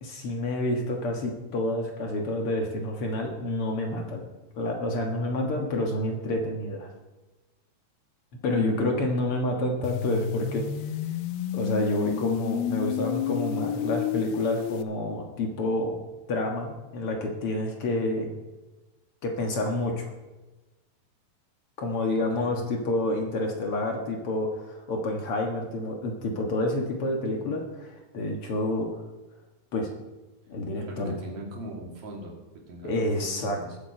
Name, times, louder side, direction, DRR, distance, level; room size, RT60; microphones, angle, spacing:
voice 1, 0.0-4.2 4.6-6.9 8.4-10.7 11.5-16.0 16.3-18.3 19.2-20.1 21.8-28.9 29.7-29.9 30.5-31.2 32.8-33.6, left 1 dB, 60° left, 1 dB, 1.5 m, -28 dB
sound 1, 9.8-14.8, left 10 dB, 80° left, 2.5 m, -30 dB
voice 2, 22.1-22.6 30.9-32.3 32.7-33.8, right 1 dB, 45° right, -1 dB, 3.5 m, -41 dB
21.5 x 7.6 x 4.4 m, 1.1 s
omnidirectional pair, 4.7 m